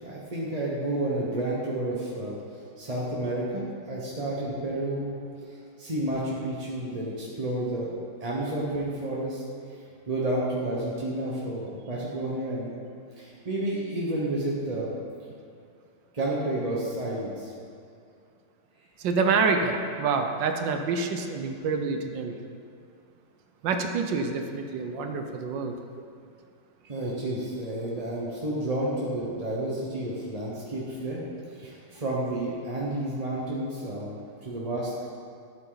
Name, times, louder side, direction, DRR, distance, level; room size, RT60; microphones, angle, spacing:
voice 1, 0.0-2.4 2.8-5.2 5.5-7.9 8.2-9.4 9.7-9.8 10.1-12.7 13.1-14.9 16.1-17.5 26.9-31.2 31.5-35.0, right 1 dB, 25° right, -5 dB, 0.8 m, -31 dB
voice 2, 19.0-22.4 23.6-25.8, right 4 dB, 70° right, 5 dB, 1.3 m, -27 dB
12.0 x 8.9 x 4.0 m, 2.3 s
omnidirectional pair, 2.3 m